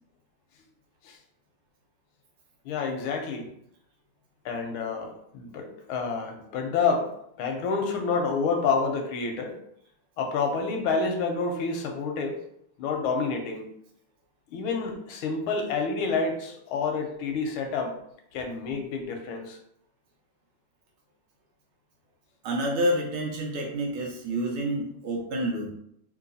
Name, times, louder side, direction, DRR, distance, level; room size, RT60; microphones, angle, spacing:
voice 1, 2.6-3.5 4.4-7.1 7.4-9.6 10.2-12.4 12.8-13.7 14.5-17.9 18.3-19.6, left 4 dB, 85° left, 3 dB, 1.5 m, -28 dB
voice 2, 22.4-25.7, right 1 dB, 90° right, -1 dB, 1.7 m, -28 dB
3.8 x 2.8 x 2.6 m, 0.72 s
omnidirectional pair, 2.3 m